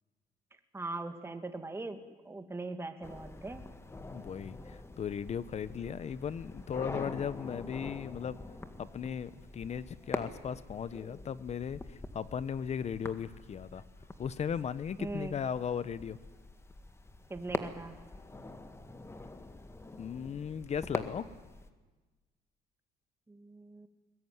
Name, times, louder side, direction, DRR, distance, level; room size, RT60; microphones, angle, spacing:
voice 1, 0.7-3.7 15.0-15.3 17.3-18.0 23.3-23.9, right 2 dB, 15° right, 7 dB, 2.2 m, -40 dB
sound 1, 3.0-21.7, left 2 dB, 15° left, 1.8 m, -44 dB
voice 2, 4.1-8.4 8.8-13.8 14.2-16.2 20.0-21.3, left 7 dB, 40° left, 16 dB, 1.0 m, -37 dB
22.0 x 20.0 x 9.7 m, 1.3 s
cardioid pair, 110°, 17 cm